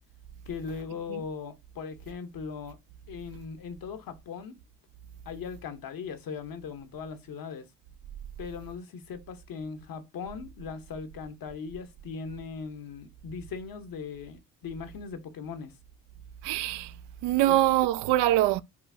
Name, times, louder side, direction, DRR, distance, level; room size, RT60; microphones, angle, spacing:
voice 1, 0.5-2.8 3.1-4.6 5.2-7.7 8.4-15.7 17.5-17.6, left 5 dB, 50° left, 1.0 m, -39 dB
voice 2, 16.4-16.9 17.2-18.6, right 15 dB, 60° right, 0.6 m, -23 dB
4.7 x 3.9 x 2.7 m
hypercardioid pair, 50°, 46 cm